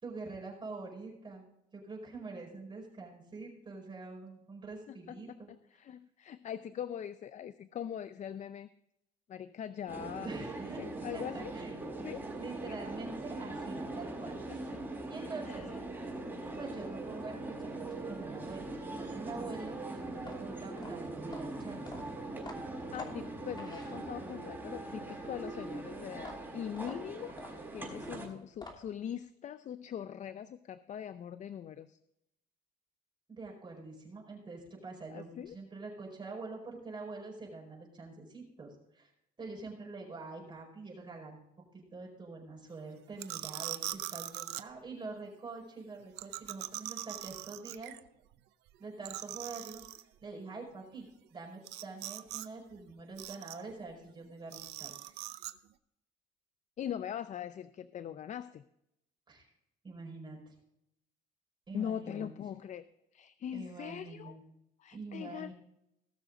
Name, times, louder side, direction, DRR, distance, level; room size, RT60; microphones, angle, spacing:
voice 1, 0.0-1.5 1.7-5.5 10.2-11.7 12.3-14.6 15.1-15.7 16.6-22.0 33.3-39.1 39.4-41.4 41.7-47.9 48.8-55.1 59.3-59.5 59.8-60.5 61.7-62.3 63.5-64.4 64.9-65.5, right 3 dB, 30° right, -2 dB, 5.1 m, -45 dB
voice 2, 4.9-8.7 9.3-10.3 10.8-11.5 12.0-12.3 15.5-15.7 22.9-32.0 35.1-35.6 56.8-58.6 61.7-62.8 63.1-64.3 64.8-65.5, left 9 dB, 45° left, 13 dB, 0.5 m, -41 dB
sound 1, 9.9-28.3, right 2 dB, 10° right, 4.9 m, -41 dB
sound 2, 20.1-24.4 26.1-29.1, left 2 dB, 25° left, 2.9 m, -49 dB
sound 3, 43.2-44.6 46.2-48.0 48.3-48.4 48.7-48.8 49.0-50.0 51.6-52.5 52.7-53.7 54.5-55.5, right 16 dB, 85° right, 0.6 m, -41 dB
19.0 x 6.6 x 3.8 m, 0.81 s
cardioid pair, 110°, 17 cm